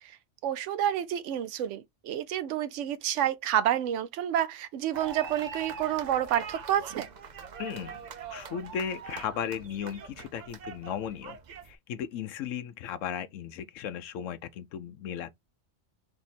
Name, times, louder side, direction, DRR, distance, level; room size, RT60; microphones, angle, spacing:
voice 1, 0.4-7.1, right 11 dB, 75° right, 0.9 m, -29 dB
sound 1, 4.9-11.7, right 6 dB, 50° right, 0.5 m, -43 dB
voice 2, 7.6-8.0 8.3-11.4 11.6-15.3, left 8 dB, 90° left, 1.0 m, -36 dB
3.3 x 2.7 x 4.1 m
omnidirectional pair, 1.3 m